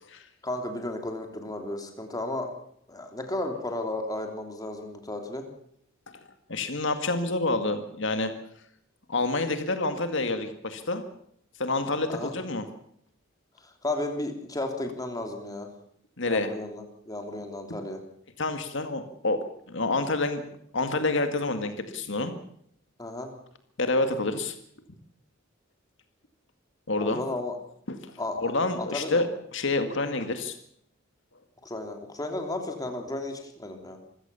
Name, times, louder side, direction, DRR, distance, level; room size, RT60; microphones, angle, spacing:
voice 1, 0.4-2.5 2.9-5.5 12.1-12.3 13.6-15.7 16.2-18.0 23.0-23.3 27.0-27.6 28.2-29.3 31.6-34.0, left 2 dB, 20° left, 4 dB, 3.3 m, -34 dB
voice 2, 6.5-8.3 9.1-11.0 11.6-12.6 16.2-16.5 17.7-17.8 18.4-20.4 20.7-22.3 23.8-24.5 26.9-27.2 27.9-30.6, left 2 dB, 65° left, 8 dB, 2.1 m, -28 dB
26.0 x 16.0 x 7.0 m, 0.67 s
head